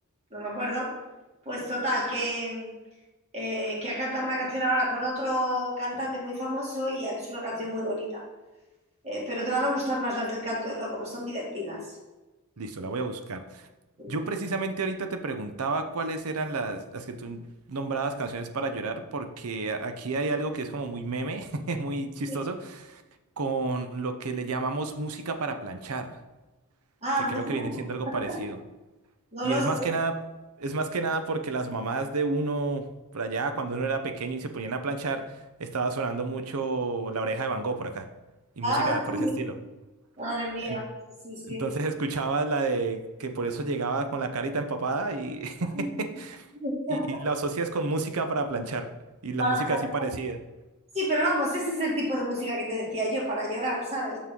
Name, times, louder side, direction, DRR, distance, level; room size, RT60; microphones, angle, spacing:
voice 1, 0.3-1.0 1.5-2.7 3.3-8.2 9.0-11.8 14.0-14.2 22.3-22.4 27.0-28.4 29.3-29.9 38.6-39.4 40.2-41.6 45.7-45.9 46.5-47.2 49.4-49.8 50.9-54.2, equal, 30° right, -4 dB, 2.2 m, -29 dB
voice 2, 12.6-13.7 14.1-17.4 17.7-23.0 23.4-26.2 27.2-28.6 29.4-30.1 30.6-32.9 33.1-38.0 38.6-39.5 40.7-40.8 41.4-46.5 46.9-48.9 49.2-50.4, right 3 dB, 75° right, 7 dB, 0.7 m, -30 dB
6.2 x 5.9 x 3.7 m, 1.1 s
head